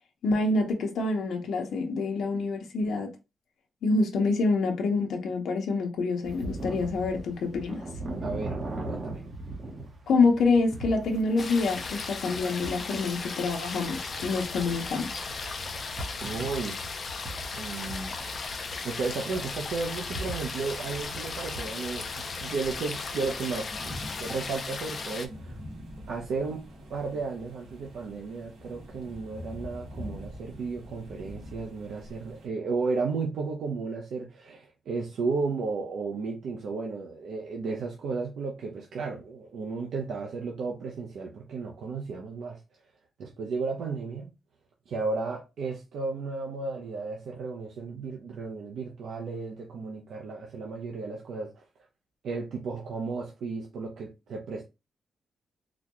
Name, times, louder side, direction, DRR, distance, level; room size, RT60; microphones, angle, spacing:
voice 1, 0.2-3.1 3.8-7.9 10.1-15.2, left 3 dB, 70° left, 0.8 m, -26 dB
sound 1, 6.2-23.6, right 2 dB, 35° right, 0.8 m, -41 dB
voice 2, 8.2-8.6 8.9-9.2 16.2-16.8 17.5-18.1 18.8-23.9 24.2-25.6 26.1-42.6 43.2-44.3 44.9-51.6 52.2-54.6, right 4 dB, 70° right, 0.6 m, -34 dB
sound 2, 11.4-25.3, left 4 dB, 35° left, 0.5 m, -36 dB
sound 3, 19.3-32.5, left 1 dB, 85° right, 1.5 m, -46 dB
4.0 x 2.3 x 3.0 m
wide cardioid pair, 160°, 0 cm